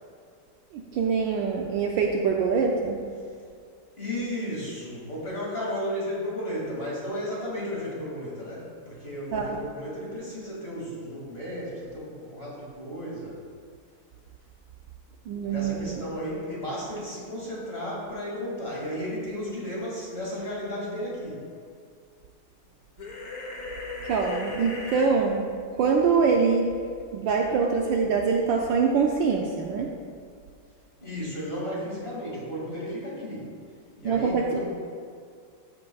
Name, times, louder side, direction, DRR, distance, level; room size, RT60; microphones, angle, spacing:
voice 1, 0.7-3.0 9.3-9.6 15.3-16.0 24.0-26.7 27.1-29.9 34.0-34.7, right 5 dB, 70° right, 1 dB, 1.2 m, -24 dB
voice 2, 4.0-13.4 15.5-21.4 31.0-33.5 34.0-34.7, equal, 25° left, -6 dB, 2.5 m, -34 dB
sound 1, 23.0-25.1, left 3 dB, 50° left, 1.3 m, -36 dB
13.0 x 8.6 x 2.3 m, 2.2 s
omnidirectional pair, 2.4 m